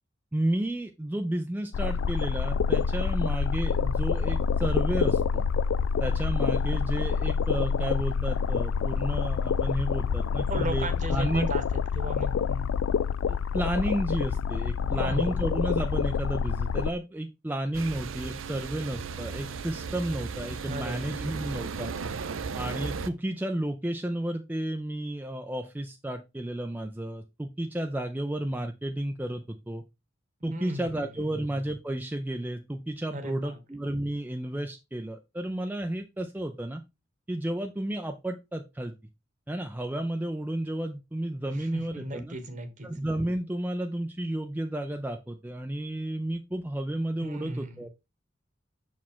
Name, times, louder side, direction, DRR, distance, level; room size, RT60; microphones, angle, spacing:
voice 1, 0.3-5.5 6.0-11.5 13.3-21.9 22.5-29.8 30.4-36.8 37.3-38.9 39.5-42.4 42.8-47.9, right 1 dB, 10° right, 5 dB, 0.4 m, -32 dB
sound 1, 1.7-16.9, left 6 dB, 85° left, 0.3 m, -27 dB
voice 2, 10.5-11.6 11.9-12.7 14.9-15.4 20.7-21.2 30.5-30.9 33.1-33.6 41.5-42.9 47.2-47.7, right 2 dB, 40° right, 9 dB, 1.1 m, -36 dB
sound 2, 17.7-23.1, right 5 dB, 85° right, 0.6 m, -36 dB
6.0 x 4.8 x 3.6 m, 0.24 s
head